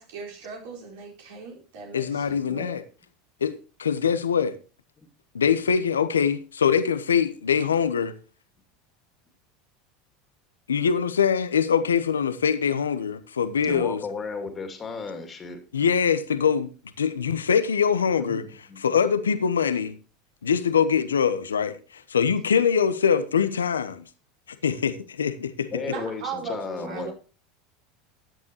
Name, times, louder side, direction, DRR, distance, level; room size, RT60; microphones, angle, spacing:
voice 1, 0.0-2.8 25.8-27.1, right 4 dB, 70° right, 4.6 m, -38 dB
voice 2, 1.9-2.8 3.4-3.5 3.8-4.6 5.3-8.2 10.7-14.0 15.7-16.7 17.0-18.4 18.8-19.9 20.4-24.0 24.6-25.9, left 7 dB, 85° left, 0.9 m, -23 dB
voice 3, 13.6-15.6 18.2-18.8 25.7-27.1, left 4 dB, 30° left, 2.5 m, -34 dB
14.0 x 9.6 x 3.0 m
hypercardioid pair, 80°, 0 cm